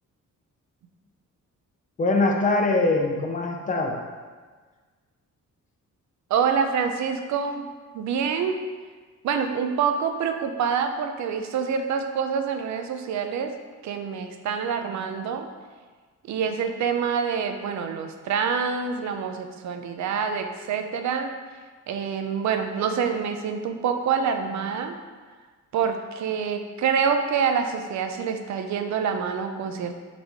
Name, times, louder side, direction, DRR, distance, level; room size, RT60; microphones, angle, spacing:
voice 1, 2.0-4.0, left 2 dB, 25° left, 1 dB, 0.5 m, -22 dB
voice 2, 6.3-7.7 7.9-8.6 9.2-13.5 13.8-15.5 16.3-21.3 21.9-25.0 25.7-29.9, right 6 dB, 65° right, 6 dB, 0.5 m, -26 dB
4.0 x 3.0 x 3.5 m, 1.4 s
cardioid pair, 115°, 31 cm